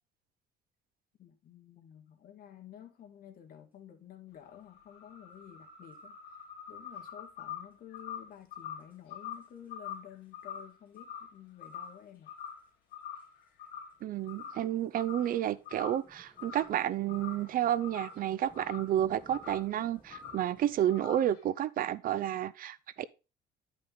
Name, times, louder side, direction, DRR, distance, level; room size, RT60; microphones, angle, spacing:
voice 1, 1.2-12.3, left 10 dB, 60° left, 1.9 m, -52 dB
sound 1, 4.3-12.0 12.3-12.7 12.9-14.0 14.2-14.6 14.9-15.4 15.7-16.8 17.1-19.0 19.3-19.7 20.1-20.5 20.9-21.4, left 8 dB, 75° left, 2.0 m, -45 dB
sound 2, 5.9-6.0 7.7-7.8 8.0-8.1 8.3-8.4 8.8-9.1 9.3-9.9 10.2-10.6 10.9-11.0 11.6-20.8, right 2 dB, 10° right, 4.9 m, -59 dB
voice 2, 14.0-23.1, right 11 dB, 55° right, 0.6 m, -31 dB
11.0 x 5.3 x 3.9 m
cardioid pair, 110°, 17 cm